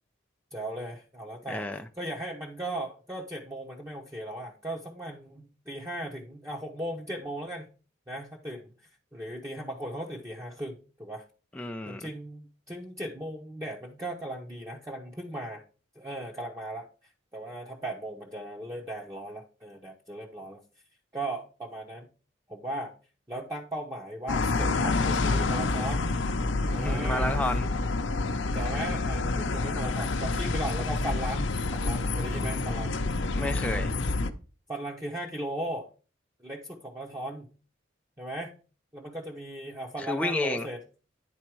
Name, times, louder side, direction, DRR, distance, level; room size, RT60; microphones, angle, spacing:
voice 1, 0.5-7.7 8.1-8.7 9.1-11.2 11.9-15.6 16.0-16.9 17.3-20.6 21.1-22.1 22.5-22.9 23.3-26.1 26.6-27.4 28.5-32.9 34.7-35.9 36.4-37.5 38.2-38.5 38.9-40.8, right 1 dB, 15° right, 0.8 m, -37 dB
voice 2, 1.5-1.8 11.5-12.1 26.8-27.7 33.3-33.9 40.0-40.7, left 1 dB, 5° left, 0.4 m, -31 dB
sound 1, 24.3-34.3, left 3 dB, 65° left, 0.7 m, -28 dB
9.9 x 4.1 x 4.6 m
head